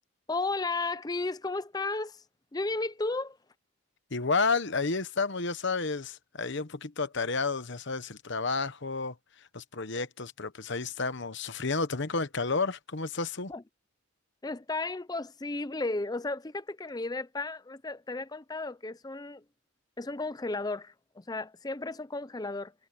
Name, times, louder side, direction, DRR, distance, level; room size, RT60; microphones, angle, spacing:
voice 1, 0.3-2.2 2.5-3.4 13.5-13.6 14.4-19.4 20.0-22.7, left 3 dB, 20° left, 0.5 m, -34 dB
voice 2, 4.1-9.1 9.5-13.5, left 4 dB, 55° left, 1.1 m, -31 dB
head